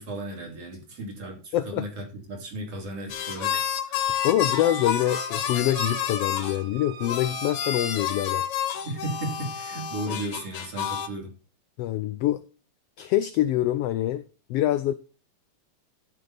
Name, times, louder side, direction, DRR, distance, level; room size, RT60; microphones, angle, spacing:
voice 1, 0.0-4.0 8.8-11.3, right 1 dB, 55° right, 3.7 m, -35 dB
voice 2, 1.5-1.9 4.2-8.5 11.8-12.4 13.0-14.2 14.5-14.9, left 13 dB, 85° left, 1.3 m, -25 dB
sound 1, 3.1-6.6 7.0-11.1, left 9 dB, 60° left, 1.8 m, -30 dB
Squeak, 4.1-8.6, right 8 dB, 80° right, 2.7 m, -41 dB
13.0 x 6.4 x 4.1 m
omnidirectional pair, 3.4 m